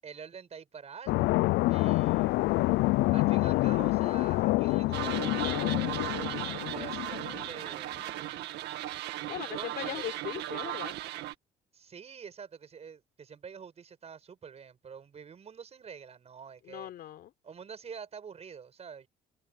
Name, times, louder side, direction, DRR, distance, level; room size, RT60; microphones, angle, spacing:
voice 1, 0.0-1.3 1.7-2.4 3.1-6.2 6.6-7.9 9.5-10.2 11.7-16.9 17.4-19.1, right 6 dB, 40° right, 6.5 m, -47 dB
sound 1, 1.1-7.5, left 20 dB, 85° left, 0.5 m, -27 dB
sound 2, 4.9-11.3, right 15 dB, 80° right, 1.9 m, -37 dB
voice 2, 9.3-10.9 16.6-17.3, left 12 dB, 70° left, 3.7 m, -39 dB
cardioid pair, 110°, 17 cm